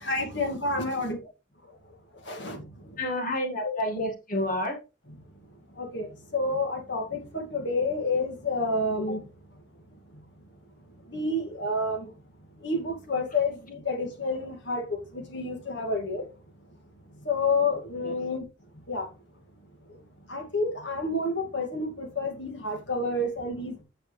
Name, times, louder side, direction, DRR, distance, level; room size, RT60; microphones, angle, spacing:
voice 1, 0.0-1.2 2.3-2.7 3.6-3.8 5.1-5.2 5.8-9.2 10.1-10.2 11.1-12.1 12.6-14.9 15.1-16.3 17.2-18.4 18.9-19.1 20.3-23.8, left 2 dB, 55° left, 2.2 m, -29 dB
voice 2, 3.0-4.8 18.0-18.2, left 1 dB, 40° left, 1.9 m, -29 dB
9.0 x 6.0 x 3.3 m
head